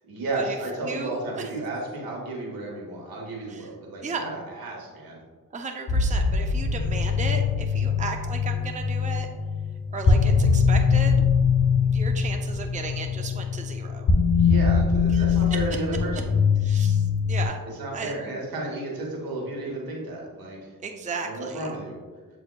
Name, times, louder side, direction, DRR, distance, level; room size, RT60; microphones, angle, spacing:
voice 1, 0.0-5.2 14.3-16.4 17.6-20.8 21.2-22.0, right 2 dB, 80° right, -2 dB, 1.3 m, -33 dB
voice 2, 0.8-1.5 3.5-3.7 4.0-4.2 5.5-9.3 9.9-11.2 11.8-14.1 15.1-15.2 16.6-17.6 17.9-18.1 20.8-21.7, right 4 dB, 20° right, 3 dB, 0.5 m, -35 dB
sound 1, 5.9-17.5, left 5 dB, 55° left, 0.8 m, -22 dB
7.9 x 2.7 x 2.2 m, 1.4 s
cardioid pair, 45°, 35 cm